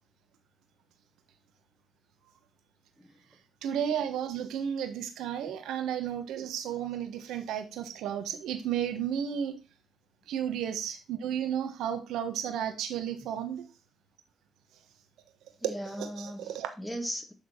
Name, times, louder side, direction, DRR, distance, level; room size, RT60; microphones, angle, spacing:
voice 1, 3.6-9.6 10.3-13.6 16.0-16.7, right 9 dB, 80° right, 1.3 m, -33 dB
voice 2, 15.6-17.3, equal, 5° left, 1.7 m, -38 dB
9.3 x 3.7 x 4.6 m
supercardioid pair, 55°, 0 cm